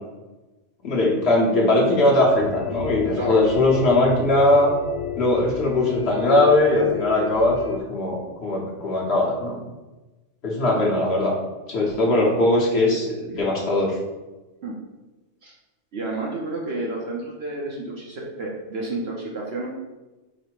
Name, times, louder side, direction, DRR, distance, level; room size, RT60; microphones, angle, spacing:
voice 1, 0.8-4.7 5.2-9.6 10.4-11.3 11.7-14.0, left 2 dB, 50° left, -3 dB, 1.0 m, -20 dB
sound 1, 2.2-7.8, left 8 dB, 85° left, 1.1 m, -31 dB
voice 2, 15.9-19.7, right 2 dB, 55° right, -2 dB, 0.8 m, -30 dB
4.9 x 2.1 x 4.5 m, 1.1 s
omnidirectional pair, 1.5 m